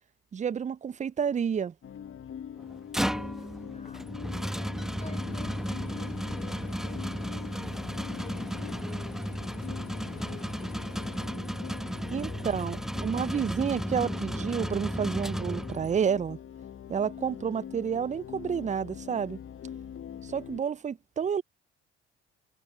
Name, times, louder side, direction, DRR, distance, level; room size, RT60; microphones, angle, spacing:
voice 1, 0.3-1.7 12.1-16.4 16.9-19.4 20.2-21.4, right 7 dB, 25° right, 0.5 m, -30 dB
sound 1, 1.8-20.6, left 9 dB, 45° left, 1.0 m, -43 dB
sound 2, 2.6-16.1, equal, ahead, 1.1 m, -34 dB
voice 2, 2.9-7.0 7.4-9.6 9.9-11.2 12.4-12.5 12.8-13.2 20.4-21.0, left 3 dB, 20° left, 4.8 m, -54 dB
sound 3, 5.2-11.3, left 24 dB, 80° left, 1.0 m, -49 dB
hypercardioid pair, 55°, 30 cm